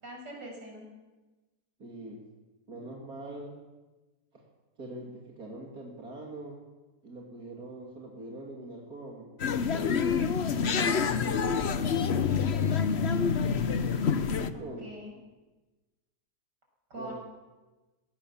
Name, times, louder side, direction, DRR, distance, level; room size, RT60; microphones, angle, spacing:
voice 1, 0.0-0.9 11.3-11.8 14.5-15.2 16.9-17.2, right 1 dB, 85° right, 0 dB, 7.2 m, -43 dB
voice 2, 1.8-2.2 2.7-3.6 4.3-4.5 4.8-6.6 7.0-9.3 10.5-11.9 14.4-14.9 16.9-17.1, right 2 dB, 60° right, -1 dB, 3.2 m, -43 dB
sound 1, 9.4-14.5, left 6 dB, 45° left, 1.0 m, -27 dB
20.5 x 18.0 x 7.3 m, 1.2 s
omnidirectional pair, 1.8 m